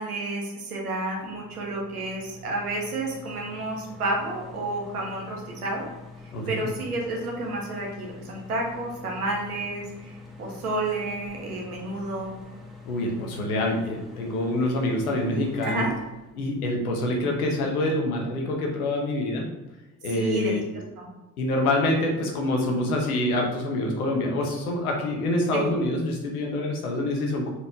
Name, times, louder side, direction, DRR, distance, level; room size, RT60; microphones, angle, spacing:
voice 1, 0.0-5.9 6.5-10.1 10.4-12.4 15.6-15.9 20.1-20.6 21.0-21.1 25.5-25.6, right 2 dB, 85° right, -1 dB, 1.4 m, -30 dB
sound 1, 1.2-17.6, left 3 dB, ahead, 1.9 m, -45 dB
voice 2, 6.3-6.7 12.8-15.8 16.4-19.5 20.0-20.6 21.4-27.5, left 1 dB, 80° left, 1 dB, 1.3 m, -26 dB
6.6 x 4.9 x 3.7 m, 1.0 s
figure-of-eight pair, 50°, 43 cm